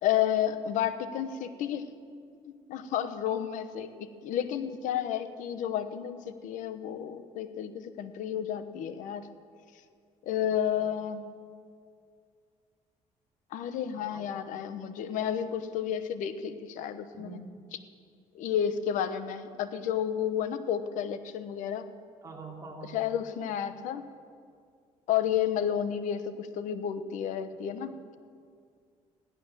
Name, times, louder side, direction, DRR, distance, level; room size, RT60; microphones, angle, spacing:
voice 1, 0.0-1.9 2.4-9.2 10.3-11.2 13.5-17.4 18.3-21.9 22.8-24.1 25.1-28.2, left 9 dB, 85° left, 11 dB, 0.9 m, -31 dB
voice 2, 10.4-10.8 14.0-14.3 17.1-17.4 22.2-23.0, right 4 dB, 25° right, -1 dB, 2.9 m, -45 dB
16.0 x 11.0 x 7.4 m, 2.2 s
cardioid pair, 120°, 13 cm